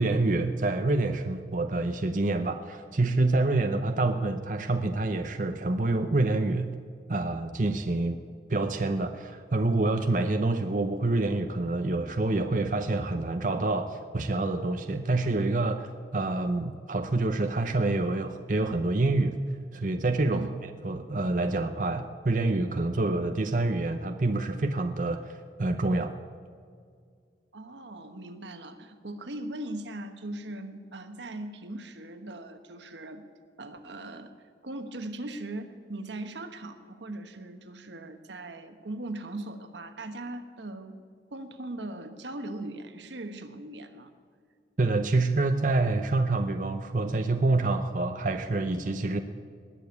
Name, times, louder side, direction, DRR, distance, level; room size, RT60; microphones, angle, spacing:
voice 1, 0.0-6.7 7.1-8.2 8.5-19.4 19.7-20.4 20.8-26.2 44.8-49.2, right 2 dB, 45° right, 7 dB, 0.7 m, -27 dB
voice 2, 20.3-20.6 27.5-33.3 33.6-34.3 34.6-41.0 41.3-44.1, right 1 dB, 85° right, 8 dB, 1.2 m, -39 dB
19.5 x 7.0 x 8.3 m, 2.1 s
head